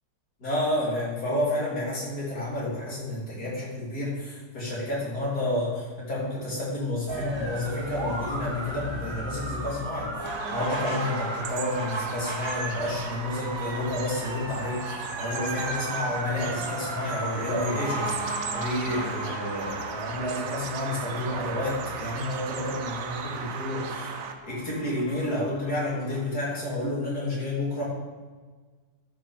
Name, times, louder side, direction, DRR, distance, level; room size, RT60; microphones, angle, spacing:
voice 1, 0.4-24.1 24.4-27.8, left 1 dB, 50° left, -6 dB, 3.8 m, -30 dB
sound 1, 7.1-26.2, right 1 dB, 15° right, 1.1 m, -36 dB
Bird vocalization bird call bird song, 10.2-24.3, right 6 dB, 60° right, 1.0 m, -37 dB
12.5 x 6.0 x 4.9 m, 1.4 s
omnidirectional pair, 2.1 m